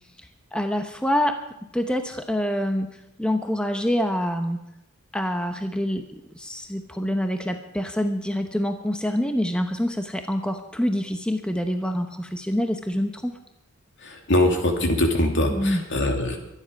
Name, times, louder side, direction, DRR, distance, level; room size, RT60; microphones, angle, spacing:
voice 1, 0.5-1.4 1.7-2.9 3.2-4.6 5.1-6.1 6.3-13.3 15.5-15.9, equal, 5° left, 6 dB, 0.8 m, -26 dB
voice 2, 14.0-16.4, left 1 dB, 60° left, 3 dB, 2.7 m, -22 dB
23.5 x 10.0 x 5.2 m, 0.85 s
head